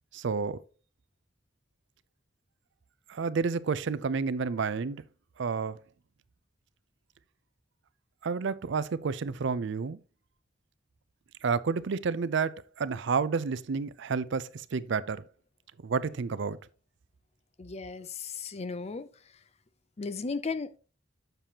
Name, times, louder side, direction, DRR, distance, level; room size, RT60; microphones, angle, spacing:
voice 1, 0.1-0.6 3.1-5.0 5.4-5.8 8.2-10.0 11.4-15.2 15.8-16.6, right 5 dB, 65° right, 0.5 m, -30 dB
voice 2, 17.6-19.4 20.0-20.8, left 4 dB, 35° left, 0.5 m, -36 dB
7.4 x 6.7 x 2.8 m
head